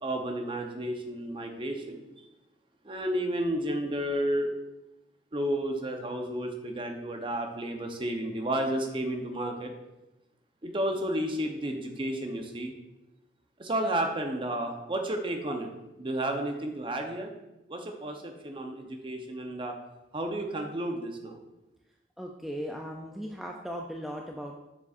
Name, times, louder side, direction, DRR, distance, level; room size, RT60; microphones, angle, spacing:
voice 1, 0.0-2.0 2.8-4.5 5.3-9.7 10.6-12.7 13.6-15.7 16.0-17.3 17.7-19.7 20.1-21.4, right 1 dB, 25° right, 3 dB, 0.7 m, -32 dB
voice 2, 22.2-24.6, equal, ahead, 0 dB, 0.3 m, -37 dB
7.1 x 6.8 x 2.4 m, 0.98 s
head